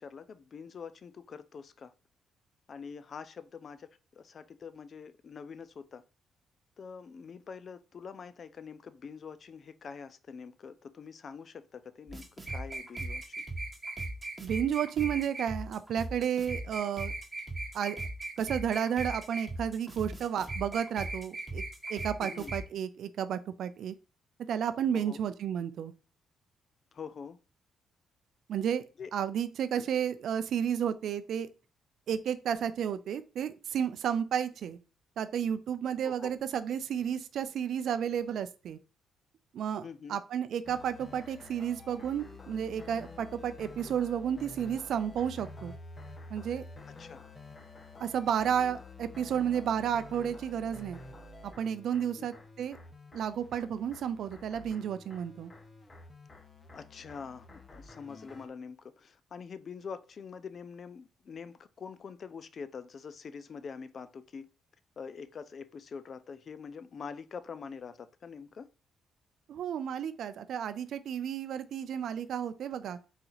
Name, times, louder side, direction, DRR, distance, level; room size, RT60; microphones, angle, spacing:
voice 1, 0.0-1.9 2.7-6.0 6.8-13.4 22.2-22.5 24.9-25.2 26.9-27.4 29.0-29.1 29.8-29.9 36.0-36.3 39.8-40.2 47.0-47.2 52.2-52.3 56.7-64.5 65.0-68.7, left 6 dB, 50° left, 0.4 m, -45 dB
sound 1, 12.1-22.6, right 2 dB, 15° right, 1.3 m, -38 dB
voice 2, 14.4-17.1 17.7-18.0 18.4-21.6 21.9-23.9 24.5-25.9 28.5-31.5 32.1-34.8 35.2-38.8 39.5-45.7 46.3-46.7 48.0-51.0 51.6-52.8 53.1-55.5 69.5-73.0, right 8 dB, 70° right, 0.4 m, -32 dB
sound 2, 40.6-58.5, left 2 dB, 30° left, 0.8 m, -49 dB
4.1 x 2.9 x 3.9 m
cardioid pair, 90°, 0 cm